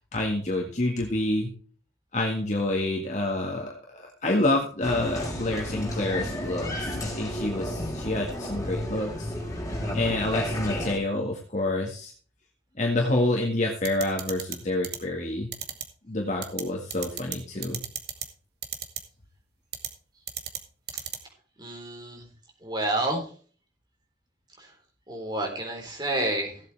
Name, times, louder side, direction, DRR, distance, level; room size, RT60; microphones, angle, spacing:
voice 1, 0.1-1.5 2.1-9.3 9.9-12.1 12.8-15.5 16.1-17.8, left 1 dB, 40° left, 0 dB, 1.8 m, -28 dB
Applause, 4.8-11.0, left 1 dB, 20° left, 4.9 m, -32 dB
sound 1, 13.8-14.6 14.8-15.0 15.5-15.8 16.4-16.6 16.9-17.4 17.6-18.3 18.6-19.0 19.7-19.9 20.3-20.6 20.9-21.2, right 9 dB, 60° right, 1.8 m, -32 dB
voice 2, 21.6-22.2 22.6-23.3 24.6-24.7 25.1-26.6, right 1 dB, 25° right, 2 dB, 3.9 m, -29 dB
16.5 x 8.1 x 3.3 m, 0.42 s
head